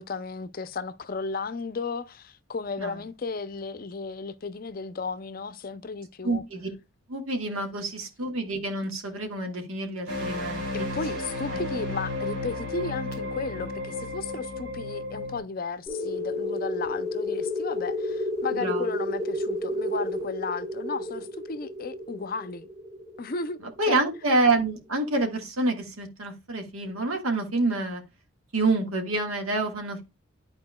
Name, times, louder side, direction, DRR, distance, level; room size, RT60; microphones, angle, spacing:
voice 1, 0.0-6.4 10.7-22.7 23.2-23.6 23.9-24.0, left 4 dB, 45° left, 0.5 m, -34 dB
voice 2, 6.2-6.7 7.1-10.6 11.5-11.6 18.5-18.9 23.8-28.0 28.5-30.0, right 2 dB, 90° right, 1.6 m, -27 dB
sound 1, 10.1-15.4, left 2 dB, 60° right, 2.6 m, -33 dB
sound 2, 15.9-24.2, left 1 dB, 15° right, 3.8 m, -31 dB
11.5 x 4.4 x 2.2 m
head